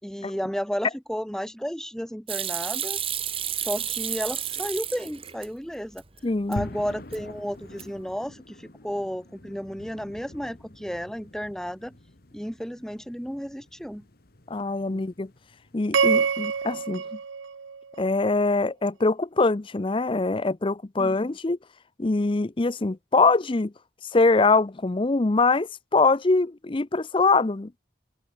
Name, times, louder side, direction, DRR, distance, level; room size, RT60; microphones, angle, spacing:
voice 1, 0.0-3.0 3.5-6.0 6.5-12.0 12.3-14.1 14.9-15.1 21.0-21.3, equal, 5° left, 3.7 m, -33 dB
Hands / Sink (filling or washing), 2.3-5.5 5.8-6.6 6.9-7.4 7.7-8.1, right 10 dB, 30° right, 1.5 m, -31 dB
voice 2, 6.2-6.7 14.5-15.3 15.7-17.0 18.0-21.6 22.0-23.7 24.1-27.8, left 3 dB, 25° left, 0.5 m, -23 dB
sound 1, 6.6-16.8, left 1 dB, 50° left, 1.7 m, -45 dB
sound 2, 15.9-18.3, right 6 dB, 85° right, 0.7 m, -26 dB
open air
head